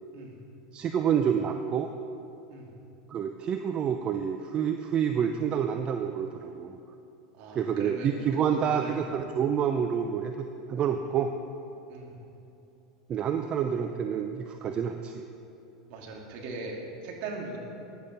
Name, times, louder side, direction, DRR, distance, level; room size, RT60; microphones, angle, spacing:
voice 1, 0.7-1.9 3.1-6.8 7.5-11.3 13.1-15.2, right 8 dB, 35° right, 6 dB, 0.7 m, -28 dB
voice 2, 7.4-9.0 11.9-12.2 15.9-16.8 17.0-17.6, right 3 dB, 55° right, 0 dB, 2.7 m, -40 dB
15.5 x 10.5 x 5.4 m, 2.8 s
hypercardioid pair, 90°, 3 cm